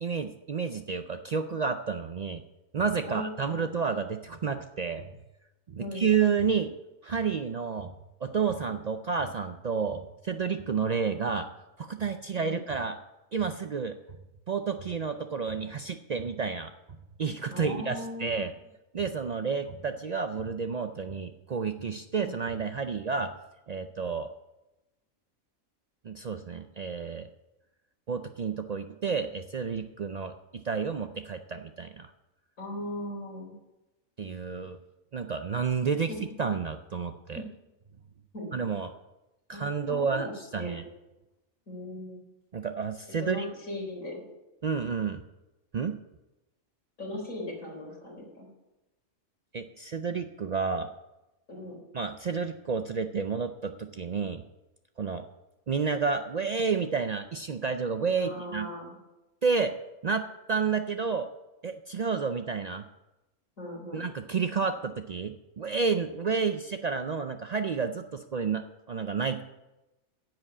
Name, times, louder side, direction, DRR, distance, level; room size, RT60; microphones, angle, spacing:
voice 1, 0.0-2.4 2.7-5.1 5.7-6.7 7.0-7.9 8.2-11.5 11.8-13.0 13.3-14.0 14.5-16.7 17.2-18.5 18.9-23.3 23.7-24.3 26.0-27.3 28.1-32.1 34.2-34.8 35.1-37.4 38.5-38.9 39.5-40.8 42.5-43.5 44.6-45.2 45.7-46.0 49.5-50.9 51.9-54.4 55.0-55.2 55.7-58.7 59.4-59.7 60.0-61.3 61.6-62.8 63.9-69.4, right 5 dB, 85° right, 8 dB, 0.3 m, -30 dB
voice 2, 3.0-3.6 5.8-6.1 12.4-12.6 17.5-18.5 22.1-22.4 32.6-33.5 36.1-36.2 37.3-37.4 38.3-38.5 39.5-40.3 40.6-40.8 41.7-42.2 43.1-44.2 47.0-48.5 51.5-51.8 58.1-58.9 63.6-64.1, left 1 dB, 70° left, -1 dB, 4.3 m, -38 dB
10.5 x 7.8 x 8.3 m, 0.99 s
omnidirectional pair, 1.4 m